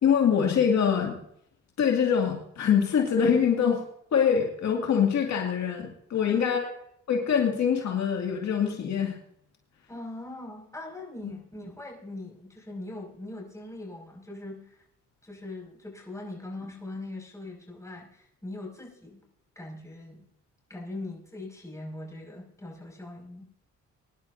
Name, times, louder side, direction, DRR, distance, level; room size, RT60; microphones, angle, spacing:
voice 1, 0.0-1.2 1.8-3.8 4.1-6.7 7.1-9.2 11.2-11.3, left 7 dB, 65° left, 0 dB, 2.3 m, -24 dB
voice 2, 9.9-14.8 15.2-19.2 19.6-20.3 20.7-23.4, left 2 dB, 10° left, 0 dB, 5.6 m, -41 dB
22.5 x 10.5 x 2.7 m, 0.72 s
cardioid pair, 90°, 30 cm